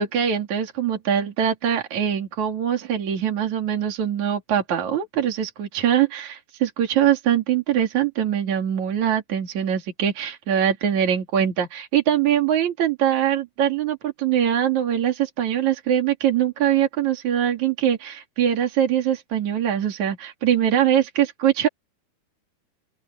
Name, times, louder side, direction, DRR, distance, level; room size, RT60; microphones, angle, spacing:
voice 1, 0.0-21.7, right 9 dB, 60° right, 4.1 m, -22 dB
open air
omnidirectional pair, 3.7 m